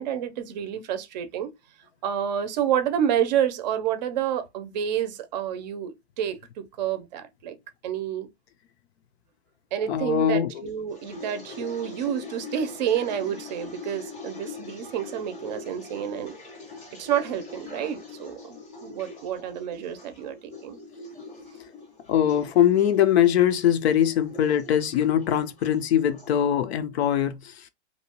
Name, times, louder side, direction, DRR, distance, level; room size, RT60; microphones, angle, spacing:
voice 1, 0.0-1.5 2.0-7.6 7.8-8.3 9.7-16.3 17.0-20.8, right 9 dB, 40° right, 0.5 m, -29 dB
voice 2, 9.9-10.5 22.1-27.5, left 10 dB, 75° left, 0.6 m, -22 dB
sound 1, 10.7-26.4, left 3 dB, 15° left, 0.4 m, -43 dB
2.7 x 2.2 x 2.8 m
supercardioid pair, 160°, 33 cm